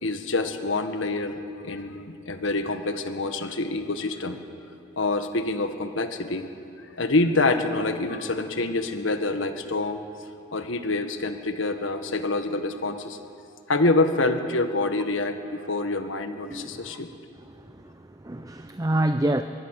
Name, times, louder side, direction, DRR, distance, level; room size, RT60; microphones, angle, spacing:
voice 1, 0.0-4.4 5.0-6.5 7.0-10.0 10.5-13.2 13.7-17.1, left 2 dB, 80° left, 7 dB, 1.6 m, -26 dB
voice 2, 16.5-17.0 17.6-19.4, right 1 dB, 15° right, 8 dB, 0.5 m, -28 dB
24.0 x 20.0 x 6.6 m, 2.7 s
head